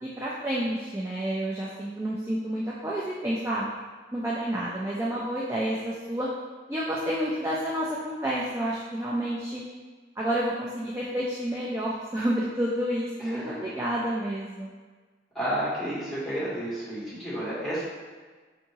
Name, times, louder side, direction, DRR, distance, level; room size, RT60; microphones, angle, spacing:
voice 1, 0.0-3.7 4.1-6.3 6.7-9.6 10.2-14.7, right 1 dB, 15° right, -6 dB, 0.3 m, -29 dB
voice 2, 13.2-13.7 15.3-17.8, equal, ahead, -10 dB, 1.3 m, -31 dB
4.6 x 2.7 x 2.8 m, 1.4 s
head